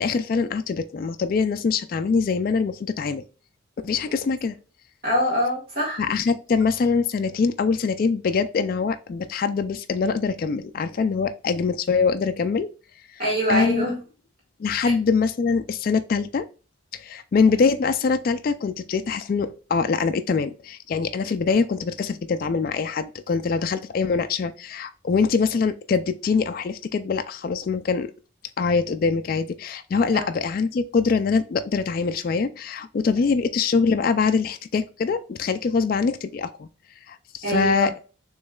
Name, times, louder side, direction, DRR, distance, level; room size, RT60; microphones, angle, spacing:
voice 1, 0.0-3.2 3.8-4.6 6.0-12.7 13.5-13.9 14.6-16.4 16.9-28.1 28.6-36.7 37.1-38.0, left 5 dB, 45° left, 0.3 m, -23 dB
voice 2, 5.0-6.0 13.2-13.9 30.1-30.2 37.4-37.9, equal, 50° right, 1.8 m, -24 dB
6.5 x 3.1 x 2.3 m
head